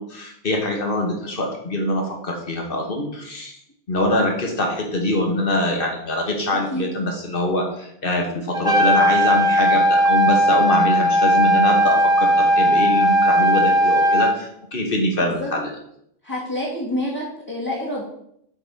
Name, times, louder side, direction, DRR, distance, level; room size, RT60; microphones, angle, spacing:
voice 1, 0.0-3.6 3.9-15.7, left 1 dB, 40° left, 1 dB, 1.5 m, -23 dB
Trumpet, 8.5-14.3, equal, 5° right, 0.6 m, -17 dB
voice 2, 16.2-18.0, left 1 dB, 15° left, -6 dB, 1.6 m, -27 dB
8.0 x 4.0 x 5.3 m, 0.73 s
omnidirectional pair, 1.4 m